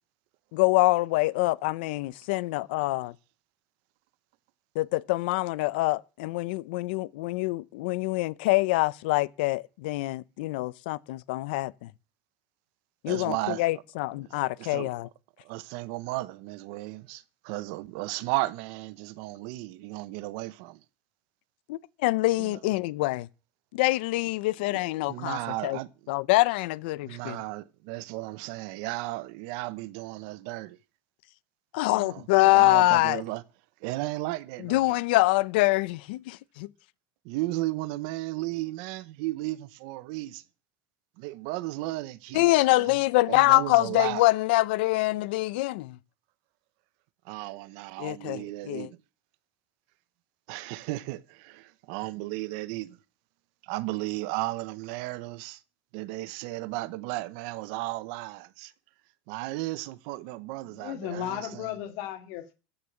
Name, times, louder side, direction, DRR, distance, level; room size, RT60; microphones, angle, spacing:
voice 1, 0.5-3.1 4.7-11.9 13.0-15.1 21.7-23.3 23.7-25.8 26.1-27.4 31.7-33.2 34.6-36.7 42.3-46.0 48.0-48.9, left 20 dB, 85° left, 0.7 m, -25 dB
voice 2, 13.1-13.6 14.2-14.9 15.4-20.8 22.4-22.6 24.7-24.8 25.1-26.1 27.0-30.8 31.8-33.4 33.8-35.0 37.2-40.4 41.2-43.0 43.3-44.2 47.2-49.0 50.5-53.0 53.6-55.6 55.9-58.7 59.3-61.7, right 19 dB, 65° right, 0.9 m, -35 dB
voice 3, 60.7-62.5, left 10 dB, 60° left, 2.2 m, -35 dB
14.5 x 6.8 x 8.7 m
cardioid pair, 175°, 5 cm